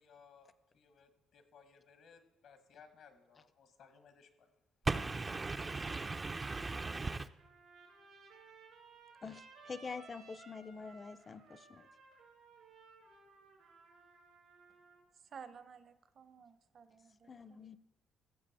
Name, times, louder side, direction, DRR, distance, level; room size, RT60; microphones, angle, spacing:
voice 1, 0.0-4.5, left 6 dB, 75° left, 9 dB, 1.4 m, -62 dB
voice 2, 4.9-7.3, right 3 dB, 30° right, 8 dB, 0.4 m, -37 dB
Trumpet, 7.4-15.0, right 4 dB, 85° right, 4.0 m, -59 dB
voice 3, 9.2-11.9 17.3-17.8, left 5 dB, 35° left, 16 dB, 0.6 m, -46 dB
voice 4, 15.2-17.6, right 6 dB, 55° right, 12 dB, 0.8 m, -54 dB
15.0 x 7.5 x 4.2 m, 1.1 s
cardioid pair, 90°, 0 cm